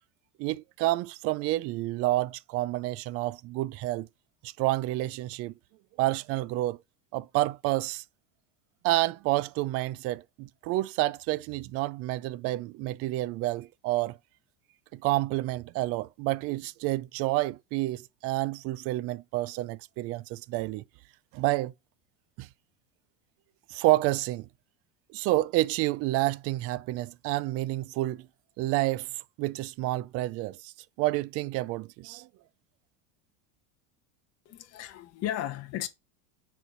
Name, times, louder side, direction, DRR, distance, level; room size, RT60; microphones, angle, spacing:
voice 1, 0.4-4.1 4.4-5.5 6.0-6.8 7.1-8.0 8.8-14.2 14.9-20.8 21.3-21.7 22.4-22.5 23.7-24.5 25.1-28.3 28.6-29.1 29.4-30.7 31.0-32.3, right 18 dB, 40° right, 0.4 m, -29 dB
voice 2, 34.4-35.9, left 12 dB, 40° left, 1.7 m, -34 dB
6.9 x 4.5 x 6.7 m
cardioid pair, 160°, 38 cm